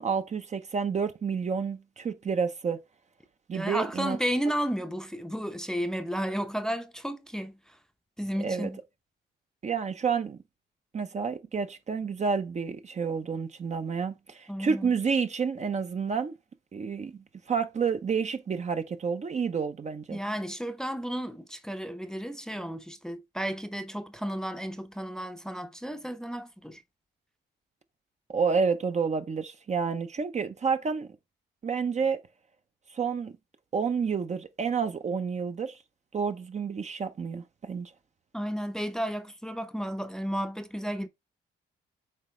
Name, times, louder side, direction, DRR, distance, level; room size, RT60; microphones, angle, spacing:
voice 1, 0.0-2.8 3.5-4.2 8.4-8.7 9.6-10.4 10.9-16.4 16.7-17.2 17.5-20.2 28.3-31.1 31.6-32.3 32.9-33.4 33.7-35.8 36.1-37.9, right 5 dB, 35° right, 0.7 m, -29 dB
voice 2, 3.5-7.8 8.2-8.8 14.5-14.9 20.1-26.8 38.3-41.1, equal, 5° left, 0.7 m, -33 dB
7.6 x 4.0 x 3.2 m
cardioid pair, 90°, 20 cm